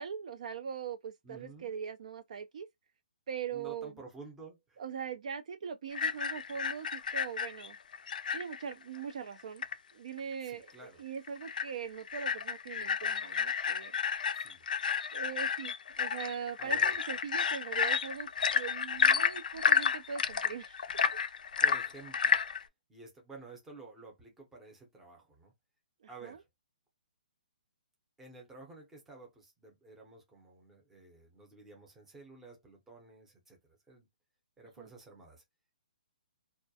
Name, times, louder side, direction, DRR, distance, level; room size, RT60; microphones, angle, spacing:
voice 1, 0.0-2.7 3.3-4.0 4.8-7.8 8.3-9.6 9.9-13.9 15.1-20.9 26.0-26.4 34.8-34.9, right 7 dB, 50° right, 0.3 m, -41 dB
voice 2, 1.2-1.7 3.5-4.8 10.4-11.0 14.4-14.6 16.6-16.9 21.6-22.4 22.9-25.5 26.1-26.4 28.2-33.6 33.9-34.1 34.6-35.4, right 3 dB, 5° right, 0.6 m, -52 dB
sound 1, 5.9-8.7 9.0-9.1 9.4-9.7 10.2-10.3 10.7-10.8 11.3-11.7 12.0-22.6, left 6 dB, 70° left, 0.3 m, -31 dB
2.3 x 2.1 x 2.6 m
hypercardioid pair, 165°, 5 cm